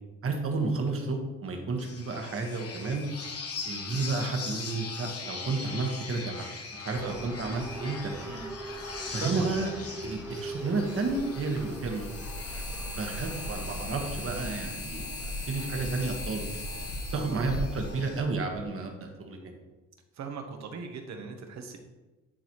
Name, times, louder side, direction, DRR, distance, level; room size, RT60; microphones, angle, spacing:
voice 1, 0.2-3.0 3.6-6.5 6.8-8.3 9.1-9.7 10.0-12.1 12.9-16.4 17.1-19.4, right 3 dB, 50° right, 2 dB, 1.4 m, -31 dB
sound 1, 1.8-18.2, left 4 dB, 50° left, 1.2 m, -42 dB
sound 2, 6.9-14.5, right 1 dB, 5° right, 0.5 m, -42 dB
sound 3, 9.3-9.4 10.7-18.6, left 1 dB, 75° left, 1.7 m, -37 dB
voice 2, 17.1-17.4 20.1-21.8, right 5 dB, 65° right, 5 dB, 1.1 m, -39 dB
10.0 x 4.1 x 3.0 m, 1.1 s
cardioid pair, 90°, 30 cm